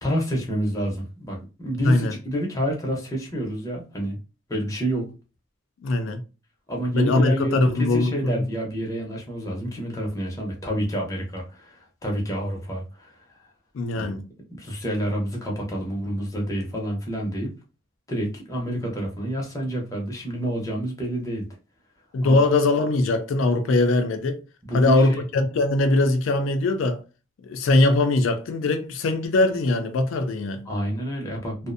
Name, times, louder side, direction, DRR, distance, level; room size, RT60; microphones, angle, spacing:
voice 1, 0.0-4.2 4.5-5.1 6.7-13.2 13.9-14.2 14.6-17.5 18.1-21.5 22.2-22.4 24.6-25.2 30.7-31.7, equal, 15° left, 0.6 m, -28 dB
voice 2, 1.8-2.2 5.8-6.2 6.9-8.2 13.7-14.3 22.1-24.4 24.7-27.0 27.4-30.7, left 2 dB, 80° left, 0.4 m, -21 dB
2.5 x 2.0 x 2.5 m
head